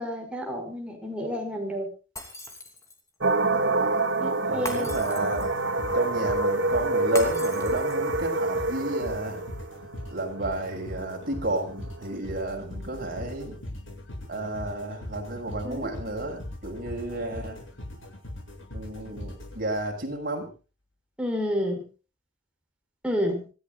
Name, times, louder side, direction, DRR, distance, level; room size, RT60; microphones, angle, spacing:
voice 1, 0.0-1.9 4.2-4.9 15.6-15.9 21.2-21.8 23.0-23.4, equal, 5° right, 1 dB, 5.5 m, -30 dB
Shatter, 2.2-3.1 4.7-5.6 7.2-8.2, left 2 dB, 15° left, 3.2 m, -39 dB
sound 1, 3.2-12.1, right 2 dB, 70° right, 2.2 m, -27 dB
voice 2, 3.5-4.0 4.5-5.5 5.9-9.4 10.1-13.6 14.3-17.6 18.7-20.5, right 1 dB, 50° right, 1 dB, 6.5 m, -32 dB
sound 2, 4.9-20.1, left 1 dB, 90° left, 7.6 m, -41 dB
26.0 x 15.5 x 2.5 m, 0.35 s
head